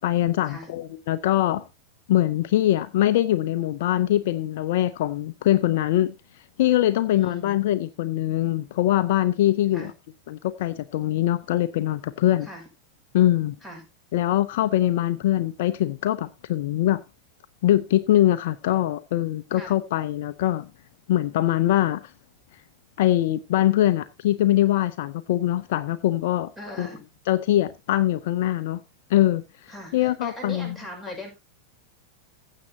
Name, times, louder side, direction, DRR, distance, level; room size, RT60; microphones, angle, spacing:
voice 1, 0.0-1.6 2.1-6.1 6.6-9.9 10.3-12.5 13.1-13.5 14.1-17.0 17.6-20.7 21.1-22.0 23.0-26.5 26.8-26.9 27.3-28.8 29.1-30.8, left 13 dB, 55° left, 0.6 m, -23 dB
voice 2, 7.1-7.6 9.7-9.9 12.4-12.7 13.6-13.9 19.5-19.7 26.6-27.0 29.7-31.3, equal, 5° right, 6.1 m, -39 dB
15.5 x 7.6 x 2.8 m
figure-of-eight pair, 90°, 0 cm